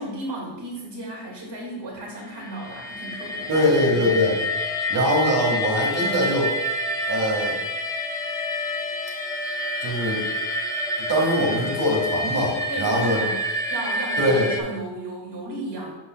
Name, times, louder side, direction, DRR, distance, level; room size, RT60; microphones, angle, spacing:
voice 1, 0.0-4.0 12.7-13.4 13.7-16.0, right 1 dB, 60° right, -2 dB, 2.0 m, -34 dB
sound 1, 2.4-14.6, left 1 dB, 10° left, 0.5 m, -28 dB
voice 2, 3.5-4.4 4.9-6.5 7.0-7.5 9.8-10.2 11.0-13.2 14.2-14.5, equal, 40° right, -2 dB, 1.7 m, -22 dB
7.3 x 6.2 x 2.2 m, 1.1 s
wide cardioid pair, 180°, 47 cm